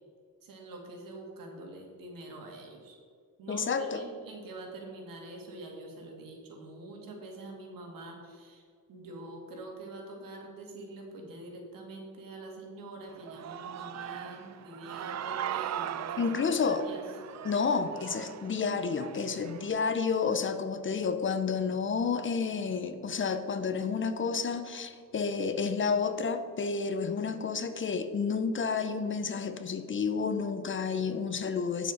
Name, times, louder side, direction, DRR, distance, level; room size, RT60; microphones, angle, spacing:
voice 1, 0.4-3.0 3.4-8.6 8.9-17.0, right 2 dB, 90° right, 1 dB, 2.2 m, -45 dB
voice 2, 3.5-4.0 16.2-16.8 17.4-31.9, left 5 dB, 40° left, 10 dB, 0.7 m, -30 dB
Human voice / Cheering, 13.1-19.7, right 10 dB, 55° right, 0.5 m, -39 dB
8.9 x 7.1 x 5.3 m, 2.2 s
wide cardioid pair, 140°, 33 cm